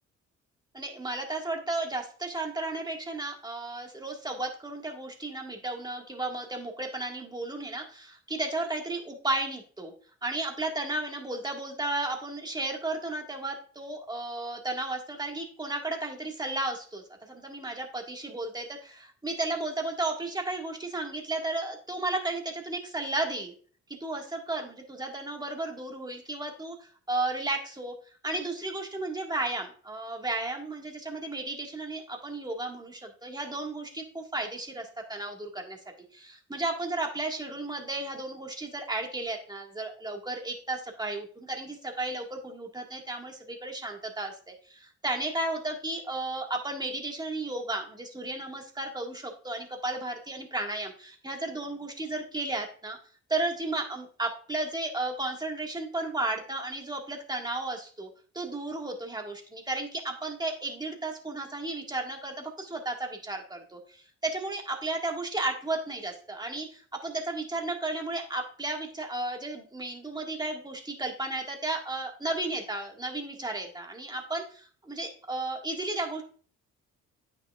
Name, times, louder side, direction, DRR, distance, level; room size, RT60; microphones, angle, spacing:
voice 1, 0.7-9.9 10.2-23.5 24.0-27.9 28.2-35.8 36.1-53.0 53.3-58.1 58.3-76.2, right 2 dB, 15° right, 2 dB, 1.8 m, -34 dB
8.9 x 6.1 x 2.4 m, 0.43 s
cardioid pair, 90°, 30 cm